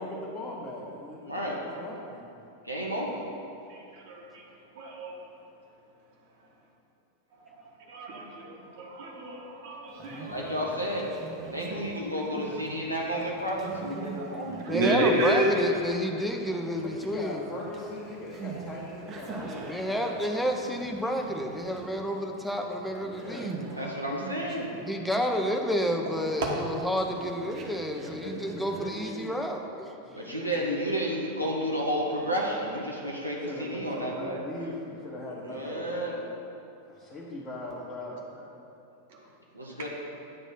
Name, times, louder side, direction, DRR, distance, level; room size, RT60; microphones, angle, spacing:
voice 1, 0.0-2.3 10.1-10.9 16.5-19.9 23.0-23.6 27.1-29.3 29.9-30.8 33.4-36.0 36.8-38.2, left 1 dB, 25° left, -6 dB, 1.0 m, -41 dB
voice 2, 1.2-1.6 2.6-3.3 10.2-11.1 11.5-14.6 23.7-24.7 30.1-34.4 35.4-36.2 39.5-39.9, equal, 90° right, -3 dB, 1.0 m, -31 dB
voice 3, 3.7-4.4 4.7-5.1 7.9-10.4 14.1-14.3 14.6-15.6 26.4-26.5 39.1-39.2 39.6-39.9, right 1 dB, 55° right, -3 dB, 1.3 m, -30 dB
Conversation, 9.9-29.6, right 4 dB, 30° right, 0.8 m, -44 dB
voice 4, 14.7-17.4 19.7-23.6 24.8-30.0, equal, 5° left, 2 dB, 0.6 m, -30 dB
8.9 x 3.0 x 5.7 m, 2.7 s
figure-of-eight pair, 90°, 0 cm